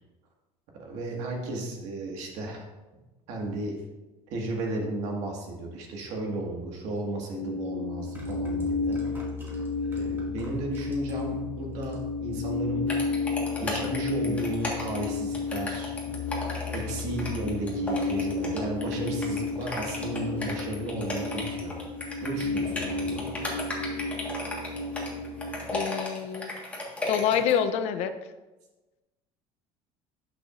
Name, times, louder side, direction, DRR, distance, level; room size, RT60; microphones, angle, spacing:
voice 1, 0.8-2.6 3.3-3.8 4.3-9.0 9.9-12.9 13.6-16.0 16.7-21.8 22.2-23.3, right 2 dB, 70° right, 0 dB, 1.8 m, -34 dB
sound 1, 7.0-7.1 7.9-11.4 11.7-12.2 12.5-12.6, right 2 dB, 20° right, 2.1 m, -50 dB
sound 2, 7.3-25.8, left 3 dB, 85° left, 1.6 m, -32 dB
sound 3, 12.9-27.5, left 1 dB, 10° left, 1.5 m, -35 dB
voice 2, 25.7-26.5 27.1-28.1, left 8 dB, 60° left, 10 dB, 0.6 m, -26 dB
10.5 x 6.1 x 2.5 m, 1.1 s
cardioid pair, 155°, 12 cm